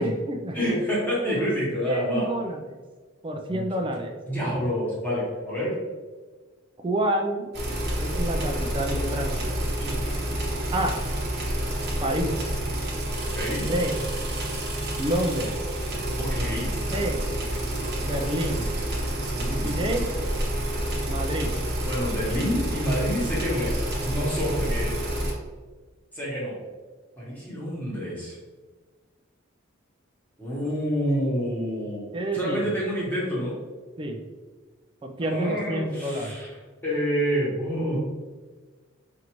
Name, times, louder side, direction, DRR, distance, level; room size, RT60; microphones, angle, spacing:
voice 1, 0.0-0.6 1.3-1.5 1.8-2.6 3.2-4.2 6.8-7.5 8.0-9.6 10.7-11.0 12.0-12.3 13.6-14.0 15.0-15.5 16.9-17.2 18.0-18.7 19.6-20.1 21.1-21.5 32.1-32.7 34.0-34.2 35.0-36.4, right 1 dB, 25° right, 3 dB, 0.3 m, -28 dB
voice 2, 0.5-2.3 3.5-3.6 4.3-5.7 9.8-10.3 13.2-13.6 16.2-16.7 19.3-19.8 21.9-25.0 26.1-26.6 27.2-28.4 30.4-32.0 32.3-33.5 35.2-36.5 36.8-38.0, equal, 10° left, -7 dB, 1.2 m, -28 dB
sound 1, 7.5-25.3, right 1 dB, 55° right, 0.9 m, -28 dB
4.6 x 2.6 x 3.0 m, 1.4 s
head